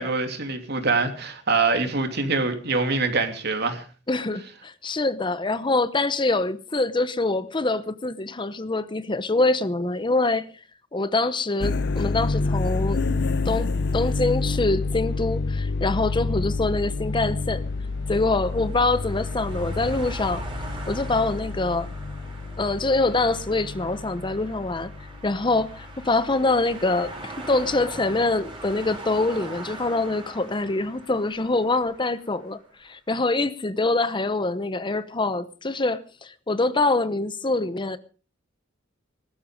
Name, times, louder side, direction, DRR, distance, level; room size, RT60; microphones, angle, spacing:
voice 1, 0.0-3.8, right 3 dB, 55° right, 3.0 m, -24 dB
voice 2, 4.1-10.5 10.9-13.0 13.4-17.6 18.1-20.4 20.9-21.9 22.6-24.9 25.2-38.0, left 2 dB, 25° left, 0.8 m, -25 dB
sound 1, 11.6-26.7, left 3 dB, 60° left, 0.7 m, -29 dB
sound 2, 17.1-32.5, right 2 dB, 25° right, 5.4 m, -41 dB
20.5 x 12.5 x 5.2 m
head